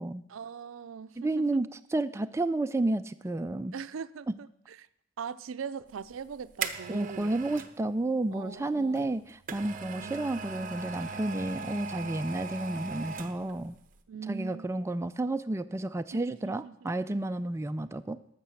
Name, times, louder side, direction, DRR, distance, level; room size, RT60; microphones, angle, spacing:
voice 1, 0.3-1.1 1.5-1.6 3.7-4.5 5.2-7.3 8.3-9.2 9.9-10.3 11.6-11.7 14.1-14.7 16.1-16.7, right 6 dB, 85° right, 14 dB, 0.4 m, -41 dB
voice 2, 1.2-3.8 6.9-13.8 14.3-18.2, right 2 dB, 15° right, 9 dB, 0.3 m, -31 dB
sound 1, 6.0-7.8 9.0-13.6 13.9-14.0, right 5 dB, 40° right, 0.8 m, -39 dB
12.0 x 6.8 x 6.4 m, 0.78 s
head